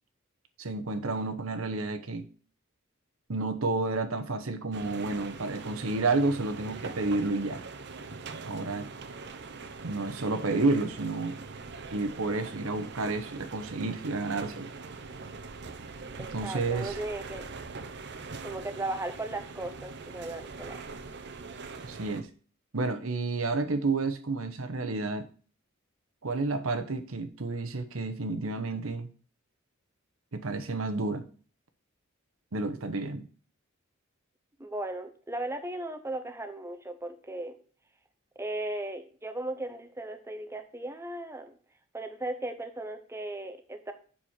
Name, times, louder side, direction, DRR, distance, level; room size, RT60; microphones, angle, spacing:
voice 1, 0.6-2.3 3.3-7.6 8.5-8.9 9.8-11.4 11.9-14.7 16.3-17.0 21.8-22.3 22.7-25.3 26.2-29.1 30.3-31.2 32.5-33.3, right 3 dB, 80° right, 8 dB, 1.0 m, -30 dB
sound 1, 4.7-22.2, right 4 dB, 55° right, 0.8 m, -42 dB
voice 2, 16.2-17.5 18.4-20.8 34.6-37.6 38.4-41.5 41.9-43.9, right 2 dB, 15° right, 7 dB, 0.8 m, -36 dB
7.4 x 6.3 x 4.3 m, 0.41 s
head